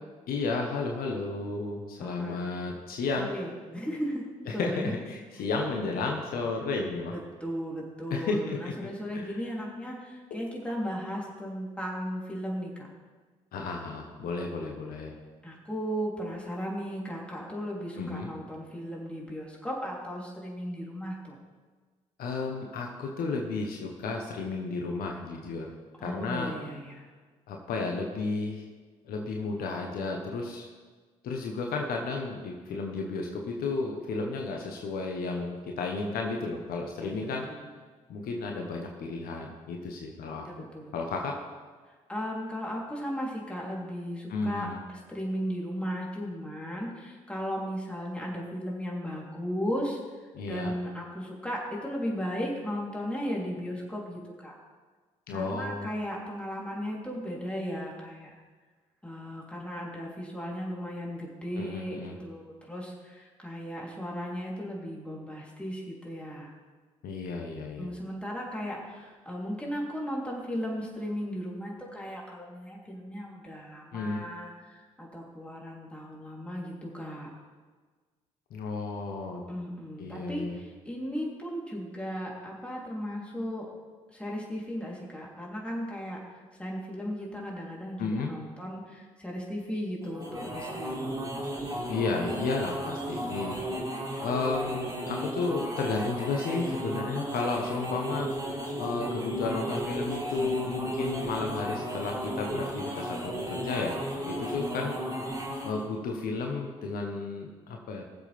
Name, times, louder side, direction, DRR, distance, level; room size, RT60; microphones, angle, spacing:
voice 1, 0.3-3.3 4.5-7.1 8.1-8.7 9.1-9.3 10.3-10.4 13.5-15.1 18.0-18.3 22.2-25.7 26.0-26.5 27.5-28.6 29.0-30.7 31.2-37.5 38.1-40.5 40.9-41.4 44.3-44.8 50.3-50.7 55.3-55.9 61.6-62.2 67.0-67.9 73.9-74.2 78.5-79.4 80.0-80.6 88.0-88.3 91.9-93.6 94.2-98.3 98.8-104.0 104.3-105.0 105.6-108.0, left 3 dB, 60° left, 1 dB, 1.3 m, -32 dB
voice 2, 2.0-2.5 3.2-4.9 7.4-12.9 15.4-21.4 26.0-27.1 37.0-37.7 40.4-40.9 41.9-50.0 50.5-54.5 55.3-58.4 59.0-66.5 67.8-77.3 79.5-83.7 84.1-91.2 104.2-104.6, equal, 5° left, -3 dB, 3.7 m, -36 dB
sound 1, 90.0-105.9, equal, 20° right, 4.4 m, -34 dB
20.0 x 7.5 x 3.6 m, 1.4 s
hypercardioid pair, 50°, 17 cm